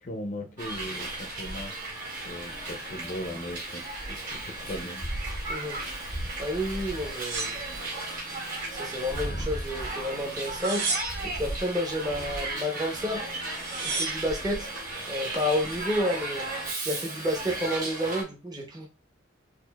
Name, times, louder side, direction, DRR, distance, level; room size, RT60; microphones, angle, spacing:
voice 1, 0.0-1.7 2.2-5.0, left 1 dB, 40° left, 3 dB, 0.5 m, -38 dB
Hiss, 0.6-18.2, right 2 dB, 45° right, 1.9 m, -35 dB
voice 2, 6.4-7.6 8.7-13.2 13.8-14.7 15.1-16.4 16.8-18.9, equal, 20° right, 0 dB, 0.7 m, -30 dB
sound 1, 7.0-8.4 8.8-9.6 10.4-11.5 13.0-13.1 13.3-14.3 15.0-15.5, right 3 dB, 65° right, 1.6 m, -34 dB
6.1 x 2.5 x 2.3 m, 0.28 s
head